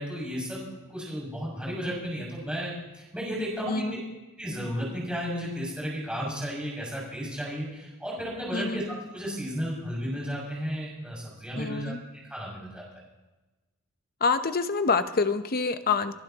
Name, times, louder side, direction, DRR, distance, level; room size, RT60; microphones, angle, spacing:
voice 1, 0.0-4.0 4.4-8.8 9.1-12.8, equal, 5° right, -5 dB, 6.6 m, -33 dB
voice 2, 11.6-12.0 14.2-16.1, left 4 dB, 45° left, 10 dB, 0.8 m, -26 dB
29.5 x 11.5 x 3.0 m, 1.1 s
head